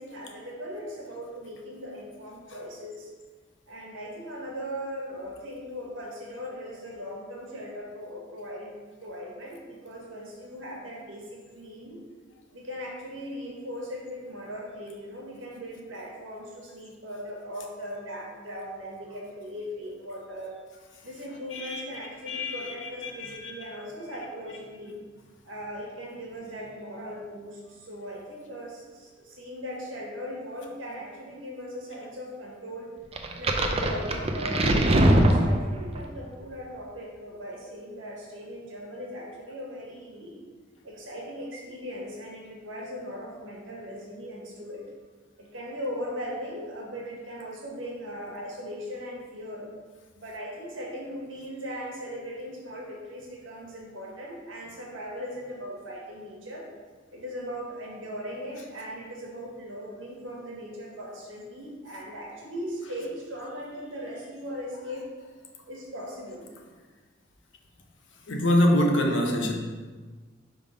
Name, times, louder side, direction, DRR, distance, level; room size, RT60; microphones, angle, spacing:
voice 1, 0.0-3.1 3.7-12.0 12.5-20.6 20.9-25.0 25.4-32.9 33.3-40.4 40.8-44.8 45.4-49.7 50.1-56.6 57.1-65.0 65.7-66.5, equal, 80° right, -3 dB, 1.6 m, -39 dB
voice 2, 21.5-21.8 22.3-22.7 23.0-23.4 68.3-69.5, left 1 dB, 65° left, 2 dB, 0.9 m, -24 dB
sound 1, 33.2-36.0, right 1 dB, 30° right, 0.5 m, -22 dB
5.5 x 3.5 x 5.1 m, 1.4 s
head